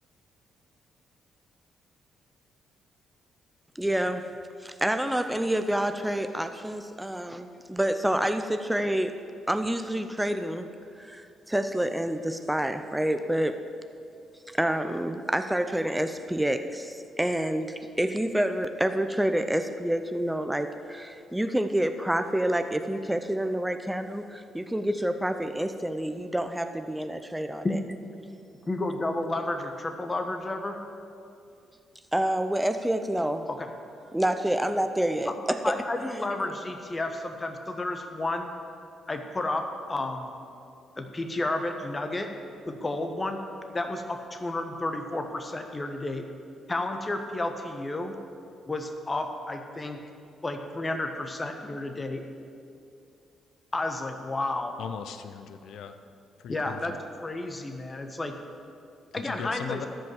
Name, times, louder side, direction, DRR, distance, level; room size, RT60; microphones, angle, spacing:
voice 1, 3.8-4.3 4.6-9.2 9.5-10.7 11.0-13.6 14.5-27.8 32.1-33.5 34.1-35.8, right 1 dB, 5° right, 8 dB, 0.6 m, -28 dB
voice 2, 28.7-30.8 33.6-33.7 35.3-35.4 35.6-38.5 39.1-40.3 41.0-42.3 42.6-43.4 43.7-46.2 46.7-48.2 48.7-50.0 50.4-52.2 53.7-54.7 56.5-56.9 57.2-58.4 59.1-59.8, left 2 dB, 30° left, 5 dB, 1.2 m, -31 dB
voice 3, 54.8-56.0 56.4-57.0 59.1-59.9, left 7 dB, 75° left, 9 dB, 0.6 m, -38 dB
13.0 x 5.4 x 7.2 m, 2.5 s
supercardioid pair, 55°, 0 cm